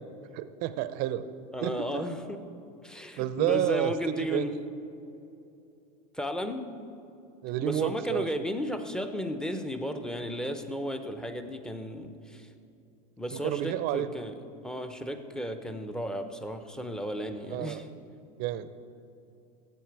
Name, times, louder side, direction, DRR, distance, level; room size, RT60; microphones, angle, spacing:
voice 1, 0.3-1.3 1.6-2.0 3.2-4.5 7.4-8.3 13.3-14.3 17.5-17.8 18.4-18.7, right 12 dB, 45° right, 13 dB, 0.6 m, -30 dB
voice 2, 1.5-2.4 2.8-4.5 6.1-6.6 7.6-12.5 13.2-14.3 14.6-17.9, equal, 5° left, 8 dB, 0.6 m, -34 dB
15.0 x 8.2 x 4.7 m, 2.7 s
supercardioid pair, 135°, 21 cm